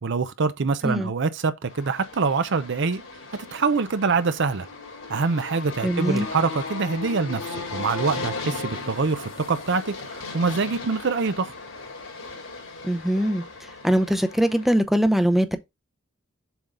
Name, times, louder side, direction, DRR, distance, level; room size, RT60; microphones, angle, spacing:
voice 1, 0.0-3.0 3.3-4.7 5.1-11.5, right 4 dB, 60° right, 0.6 m, -25 dB
sound 1, 1.7-14.8, left 3 dB, 85° left, 3.2 m, -37 dB
voice 2, 5.8-6.3 12.8-13.4 13.8-15.6, equal, ahead, 0.6 m, -22 dB
7.2 x 3.7 x 3.7 m
head